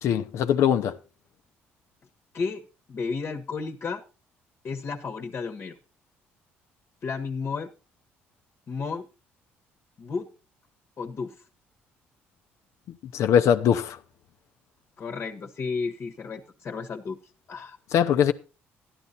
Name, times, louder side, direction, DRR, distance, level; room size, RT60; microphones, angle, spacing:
voice 1, 0.0-1.0 13.1-14.0 17.9-18.3, left 9 dB, 70° left, 0.9 m, -21 dB
voice 2, 2.3-4.0 4.6-5.8 7.0-7.7 8.7-9.1 10.0-10.3 11.0-11.4 15.0-17.2 17.5-17.8, left 5 dB, 50° left, 1.3 m, -32 dB
12.0 x 11.0 x 4.1 m
supercardioid pair, 70°, 5 cm